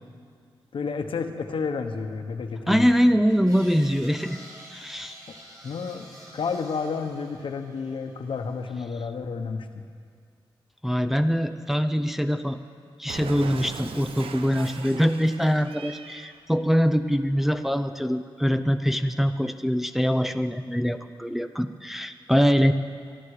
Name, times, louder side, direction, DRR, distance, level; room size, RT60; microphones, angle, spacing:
voice 1, 0.7-2.9 5.6-6.1 6.3-9.9, left 5 dB, 70° left, 6 dB, 1.2 m, -31 dB
voice 2, 2.7-4.4 4.7-5.1 10.8-12.6 13.0-22.7, equal, 5° right, 7 dB, 0.6 m, -23 dB
sound 1, 3.3-8.6, right 1 dB, 40° right, 4.7 m, -48 dB
Cat, 13.1-16.4, right 5 dB, 85° right, 0.9 m, -40 dB
24.0 x 11.5 x 5.0 m, 2.1 s
cardioid pair, 85°, 9 cm